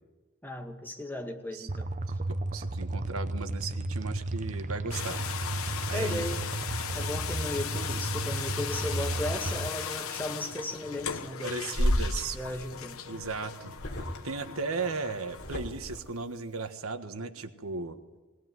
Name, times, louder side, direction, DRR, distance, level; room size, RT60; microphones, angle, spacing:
voice 1, 0.4-2.0 4.6-5.0 5.9-6.5 6.9-11.9 12.3-13.0, left 1 dB, 10° left, 3 dB, 2.0 m, -36 dB
sound 1, 1.7-9.7, right 2 dB, 35° right, 0.8 m, -33 dB
voice 2, 2.3-5.2 5.9-6.2 11.4-12.4 13.1-13.7 14.2-18.0, right 4 dB, 75° right, 8 dB, 1.5 m, -36 dB
sound 2, 4.9-15.6, left 8 dB, 75° left, 1.2 m, -38 dB
sound 3, 11.7-12.1 13.2-13.4 13.7-14.2 15.3-16.0, equal, 50° left, 3.9 m, -29 dB
21.0 x 19.0 x 9.5 m, 1.2 s
head